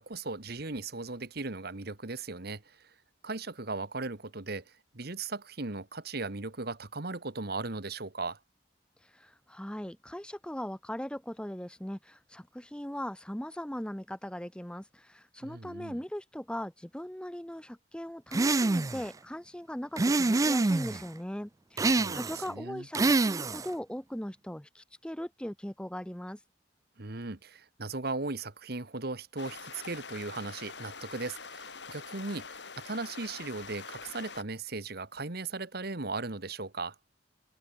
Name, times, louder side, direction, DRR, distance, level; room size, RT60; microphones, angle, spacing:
voice 1, 0.0-2.9 3.2-8.4 15.4-16.0 21.9-22.9 27.0-37.0, right 3 dB, 60° right, 1.7 m, -37 dB
voice 2, 9.0-26.4, equal, 5° left, 0.9 m, -39 dB
sound 1, 18.3-19.1 20.0-21.0 21.8-22.5 22.9-23.7, right 3 dB, 20° right, 0.4 m, -26 dB
sound 2, 29.4-34.4, left 5 dB, 70° left, 4.6 m, -45 dB
head